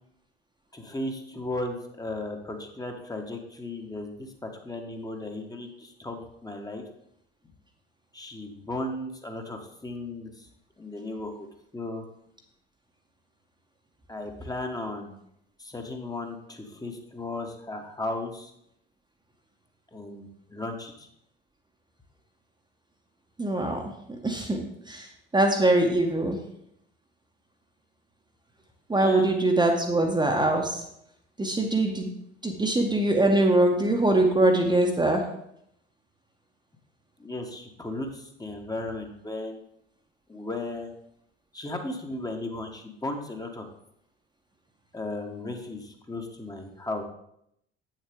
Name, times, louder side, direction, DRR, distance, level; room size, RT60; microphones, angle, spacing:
voice 1, 0.7-6.8 8.1-10.5 10.8-11.5 11.7-12.0 14.1-15.2 15.6-18.5 19.9-21.1 29.0-29.3 37.2-39.6 40.3-40.9 41.5-43.6 44.9-47.0, left 2 dB, 10° left, 3 dB, 1.3 m, -35 dB
voice 2, 23.4-26.4 28.9-30.8 31.4-32.1 32.4-35.2, right 1 dB, 15° right, 2 dB, 1.1 m, -23 dB
8.5 x 6.6 x 3.7 m, 0.76 s
figure-of-eight pair, 55°, 31 cm